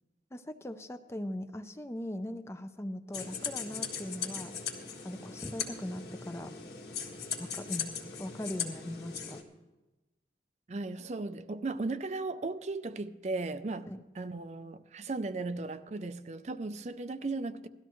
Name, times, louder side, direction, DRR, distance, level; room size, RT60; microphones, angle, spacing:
voice 1, 0.3-4.5 5.0-6.5 7.4-7.9 8.2-9.4 13.9-14.0, left 1 dB, 15° left, 0.5 m, -40 dB
sound 1, 3.1-9.4, left 6 dB, 65° left, 1.6 m, -39 dB
voice 2, 10.7-13.9 14.1-17.7, right 3 dB, 40° right, 0.4 m, -36 dB
17.5 x 13.0 x 3.1 m
head